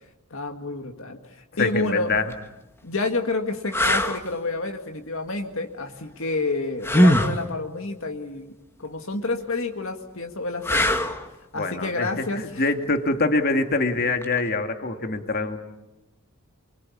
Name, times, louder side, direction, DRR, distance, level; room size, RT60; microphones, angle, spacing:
voice 1, 0.3-2.1 2.8-8.5 8.8-12.7, left 3 dB, 65° left, 4 dB, 1.9 m, -29 dB
voice 2, 1.6-2.2 11.5-15.6, left 3 dB, 45° left, 6 dB, 2.2 m, -24 dB
sound 1, 2.1-2.3 3.0-3.1 3.7-4.2 6.8-7.4 10.6-11.2 14.2-14.4, equal, 10° left, 1.5 m, -20 dB
28.0 x 24.5 x 8.6 m, 0.95 s
head